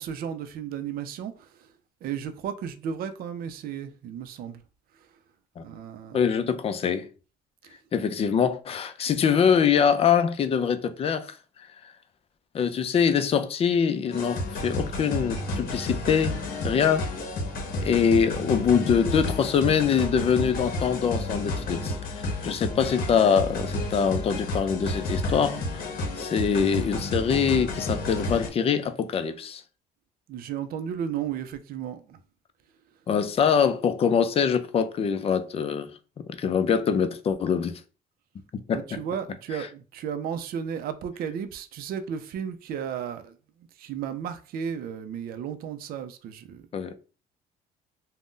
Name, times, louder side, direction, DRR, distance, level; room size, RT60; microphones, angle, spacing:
voice 1, 0.0-1.7 2.0-4.6 5.6-6.3 7.6-7.8 30.3-32.2 38.7-43.3 43.8-46.7, right 8 dB, 60° right, 0.4 m, -34 dB
voice 2, 6.1-7.1 7.9-11.4 12.5-16.4 16.6-17.1 17.8-25.6 26.1-29.6 33.1-35.9 36.4-37.8 38.5-38.8 46.7-46.9, left 7 dB, 35° left, 0.4 m, -24 dB
sound 1, 14.1-28.5, left 2 dB, 60° left, 0.8 m, -31 dB
2.5 x 2.1 x 3.6 m
cardioid pair, 110°, 17 cm